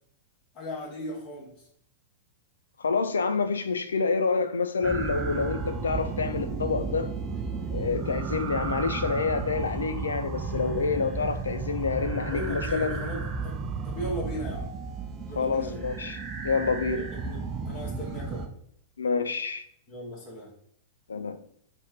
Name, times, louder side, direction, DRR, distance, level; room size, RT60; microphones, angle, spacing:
voice 1, 0.5-1.6 12.2-14.8 15.3-15.9 17.0-18.5 19.9-20.5, equal, 35° left, 1.7 m, -37 dB
voice 2, 2.8-7.1 7.7-13.0 15.4-16.2 16.4-17.1 19.0-19.7 21.1-21.4, left 4 dB, 75° left, 0.4 m, -28 dB
sound 1, 4.8-18.5, right 4 dB, 25° right, 0.5 m, -33 dB
4.1 x 2.5 x 4.6 m
figure-of-eight pair, 95°, 0 cm